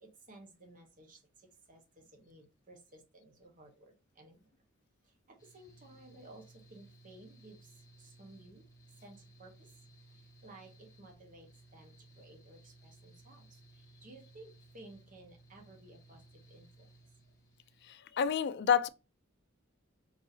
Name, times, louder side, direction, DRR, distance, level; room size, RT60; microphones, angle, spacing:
voice 1, 0.0-4.4 5.0-8.7 9.0-9.7 10.1-16.9, right 2 dB, 40° right, 1.1 m, -56 dB
Mechanical fan, 5.4-17.9, right 2 dB, 15° left, 1.2 m, -60 dB
voice 2, 17.8-18.9, left 7 dB, 55° left, 0.4 m, -29 dB
4.6 x 4.1 x 2.7 m
head